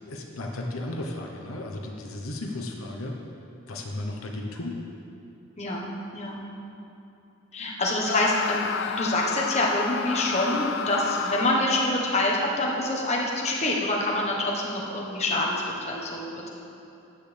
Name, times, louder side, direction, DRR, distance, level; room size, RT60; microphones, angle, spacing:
voice 1, 0.0-3.2 3.7-4.8, left 1 dB, 80° left, 0 dB, 1.0 m, -34 dB
voice 2, 5.6-5.9 6.1-6.4 7.5-8.7 9.0-16.5, left 1 dB, 30° left, -2 dB, 1.3 m, -26 dB
Screaming, 8.0-11.8, left 7 dB, 55° left, 0.4 m, -31 dB
13.5 x 9.4 x 3.5 m, 2.8 s
head